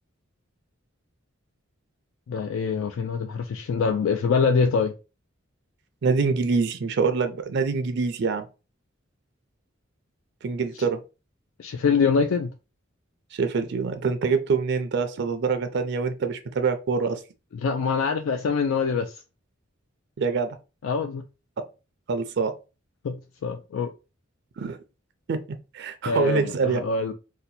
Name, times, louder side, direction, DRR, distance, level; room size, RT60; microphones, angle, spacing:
voice 1, 2.3-5.0 11.6-12.5 17.6-19.2 20.8-21.2 23.0-23.9 26.0-27.1, left 5 dB, 80° left, 0.3 m, -24 dB
voice 2, 6.0-8.4 10.4-11.0 13.3-17.2 20.2-20.6 22.1-22.6 24.6-24.8 25.3-25.4 25.7-26.8, right 4 dB, 60° right, 0.4 m, -25 dB
2.7 x 2.2 x 4.0 m
head